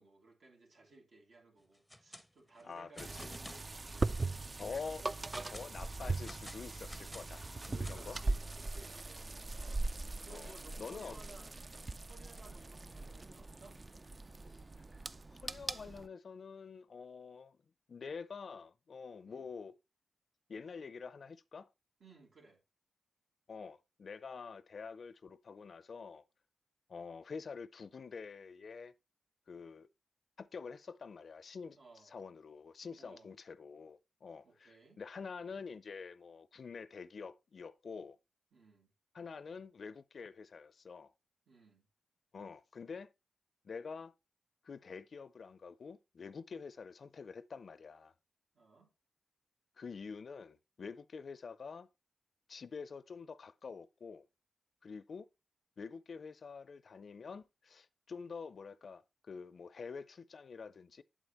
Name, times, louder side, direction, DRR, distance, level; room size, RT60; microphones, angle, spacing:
voice 1, 0.0-5.3 7.9-11.5 12.0-13.8 19.2-19.4 22.0-22.6 31.7-32.1 33.0-33.3 34.4-35.0 38.5-38.9 41.5-41.9 48.5-48.9, right 3 dB, 75° right, 2.6 m, -59 dB
sound 1, 1.7-2.3 2.5-3.7 4.2-4.3 4.8-5.7 6.3-8.2, left 1 dB, 5° left, 0.6 m, -52 dB
voice 2, 2.6-3.4 4.6-5.0 5.5-8.2 10.3-11.2 15.3-17.6 17.9-19.8 20.5-21.7 23.5-26.2 26.9-28.9 29.5-29.9 30.4-31.8 32.0-38.2 39.1-41.1 42.3-43.1 43.6-44.1 44.6-48.1 49.8-51.9 52.5-54.3 54.8-55.3 55.8-61.0, left 5 dB, 60° left, 0.4 m, -47 dB
sound 2, 3.0-16.1, right 3 dB, 35° right, 0.4 m, -40 dB
sound 3, 9.7-15.1, right 1 dB, 20° right, 1.0 m, -63 dB
8.2 x 7.5 x 2.9 m
cardioid pair, 80°, 0 cm